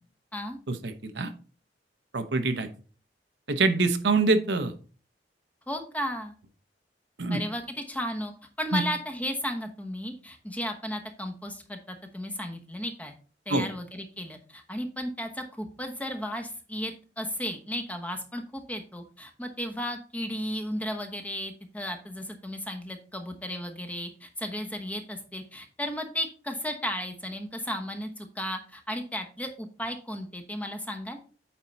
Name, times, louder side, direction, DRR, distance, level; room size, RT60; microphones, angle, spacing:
voice 1, 0.7-1.3 2.1-2.7 3.5-4.7 7.2-7.4 8.7-8.8 13.5-13.7, right 3 dB, 75° right, 9 dB, 0.9 m, -25 dB
voice 2, 5.7-6.3 7.3-8.3 8.6-13.1 13.5-31.2, equal, 10° left, 5 dB, 1.0 m, -34 dB
8.8 x 4.5 x 4.0 m, 0.38 s
head